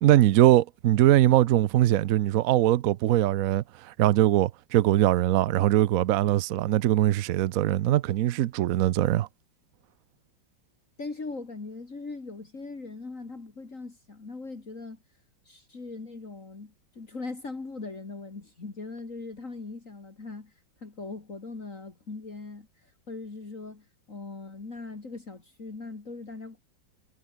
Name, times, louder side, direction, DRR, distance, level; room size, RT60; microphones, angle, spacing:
voice 1, 0.0-9.3, right 13 dB, 75° right, 0.7 m, -22 dB
voice 2, 11.0-15.0 15.5-20.5 20.8-22.7 23.1-26.6, left 3 dB, 40° left, 3.2 m, -40 dB
omnidirectional pair, 2.1 m